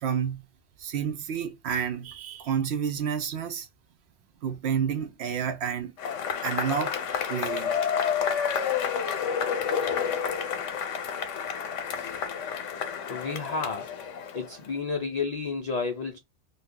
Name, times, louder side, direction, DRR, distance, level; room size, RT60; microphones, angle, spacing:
voice 1, 0.0-0.4 0.8-3.7 4.4-6.0 6.4-7.0 7.3-7.7, right 7 dB, 65° right, 0.8 m, -30 dB
Cheering / Applause / Crowd, 6.0-14.7, left 7 dB, 85° left, 1.0 m, -30 dB
voice 2, 13.1-13.9 14.3-16.2, left 4 dB, 70° left, 0.4 m, -31 dB
2.6 x 2.3 x 3.6 m
omnidirectional pair, 1.2 m